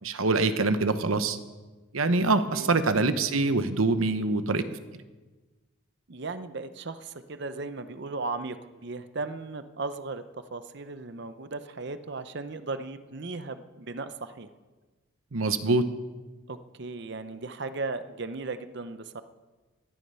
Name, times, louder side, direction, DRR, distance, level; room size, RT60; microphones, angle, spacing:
voice 1, 0.0-1.4 1.9-4.6 15.3-15.9, right 3 dB, 80° right, 10 dB, 1.0 m, -24 dB
voice 2, 2.5-2.8 6.1-10.2 10.5-14.5 16.5-19.2, right 3 dB, 55° right, 11 dB, 0.7 m, -36 dB
16.0 x 12.5 x 5.6 m, 1.3 s
head